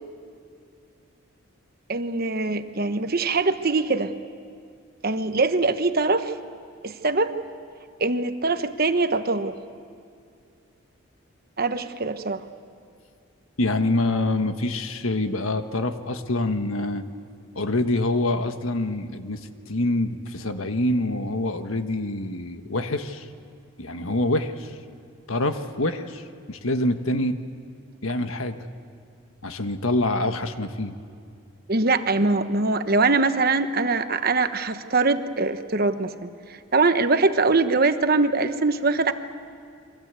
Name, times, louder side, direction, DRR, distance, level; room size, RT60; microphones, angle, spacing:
voice 1, 1.9-4.1 5.0-6.3 6.8-7.3 8.0-9.5 11.6-12.4 31.7-36.3 36.7-39.1, right 3 dB, 45° right, 9 dB, 1.1 m, -22 dB
voice 2, 13.6-17.0 17.5-23.3 23.8-24.7 25.3-27.4 28.0-28.6 29.4-30.9, left 2 dB, 80° left, 8 dB, 1.5 m, -26 dB
29.0 x 23.5 x 8.3 m, 2.4 s
head